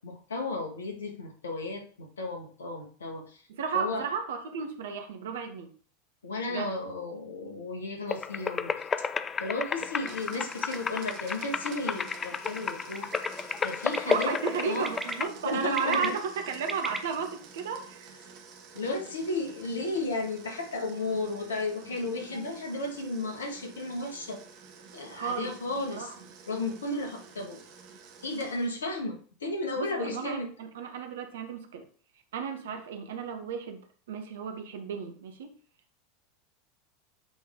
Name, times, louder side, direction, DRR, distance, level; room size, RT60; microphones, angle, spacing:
voice 1, 0.0-3.4 3.7-4.1 6.2-8.9 9.4-13.1 13.6-14.3 14.6-15.0 15.4-16.1 18.7-24.4 24.9-26.1 26.5-27.6 28.2-30.5, left 2 dB, 70° left, 2 dB, 1.7 m, -34 dB
voice 2, 3.6-5.7 6.5-6.7 14.1-18.1 25.1-25.5 25.9-26.1 29.8-31.8 32.3-35.5, right 6 dB, 60° right, 6 dB, 1.1 m, -33 dB
sound 1, 8.1-15.3, left 6 dB, 20° left, 0.4 m, -32 dB
Domestic sounds home sounds, 9.8-29.0, right 5 dB, 45° right, 1.4 m, -50 dB
Bird, 12.9-13.3 13.9-14.2 14.8-15.1 15.6-17.0, right 2 dB, 10° right, 0.8 m, -34 dB
8.4 x 3.7 x 3.7 m, 0.42 s
figure-of-eight pair, 80°, 0 cm